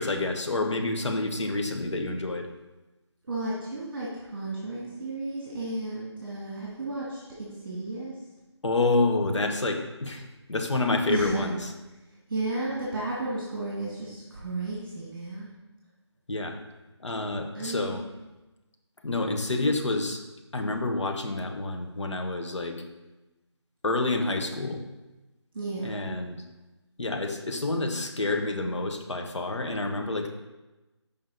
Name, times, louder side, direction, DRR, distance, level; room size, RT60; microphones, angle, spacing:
voice 1, 0.0-2.5 8.6-11.7 16.3-16.6 17.0-18.0 19.0-20.2 20.5-22.8 23.8-24.8 25.8-26.4 27.0-30.3, left 2 dB, 75° left, 4 dB, 1.2 m, -28 dB
voice 2, 3.3-8.1 11.1-11.6 12.3-15.5 17.5-18.0 25.5-26.0, right 2 dB, 50° right, -6 dB, 2.0 m, -33 dB
6.7 x 5.3 x 4.1 m, 1.1 s
figure-of-eight pair, 165°, 15 cm